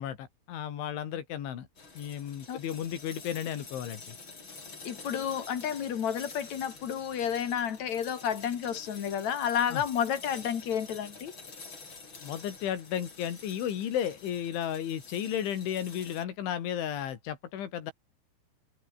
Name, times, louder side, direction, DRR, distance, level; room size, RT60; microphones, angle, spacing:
voice 1, 0.0-1.7 2.0-4.2 9.7-9.8 12.2-17.9, left 10 dB, 80° left, 5.2 m, -34 dB
sound 1, 1.8-16.2, left 4 dB, 25° left, 4.5 m, -48 dB
voice 2, 4.8-11.4, left 8 dB, 50° left, 2.6 m, -31 dB
open air
omnidirectional pair, 5.3 m